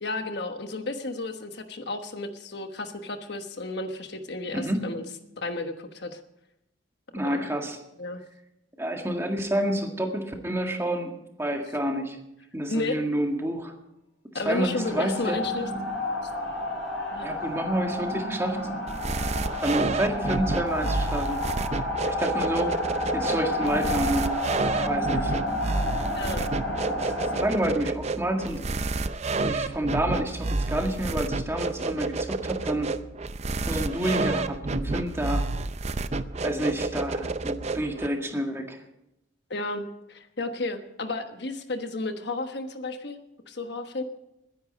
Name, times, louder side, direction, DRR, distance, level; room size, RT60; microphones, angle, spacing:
voice 1, 0.0-5.0 5.4-6.2 7.2-7.5 8.0-8.2 12.7-13.0 14.3-15.7 17.1-17.3 26.1-26.5 39.5-43.2 43.5-44.0, left 2 dB, 60° left, 7 dB, 1.2 m, -32 dB
voice 2, 7.1-7.8 8.8-11.1 11.4-12.2 12.5-13.7 14.4-15.4 17.2-18.6 19.6-21.4 22.1-22.8 23.1-24.4 24.7-25.4 27.0-27.1 27.4-28.6 29.4-32.9 33.7-35.5 36.4-38.8, right 1 dB, 15° right, 3 dB, 1.9 m, -29 dB
sound 1, 14.4-27.4, left 1 dB, 5° left, 7.4 m, -30 dB
sound 2, 18.9-38.1, right 3 dB, 35° right, 0.6 m, -30 dB
21.5 x 10.5 x 5.2 m, 0.84 s
head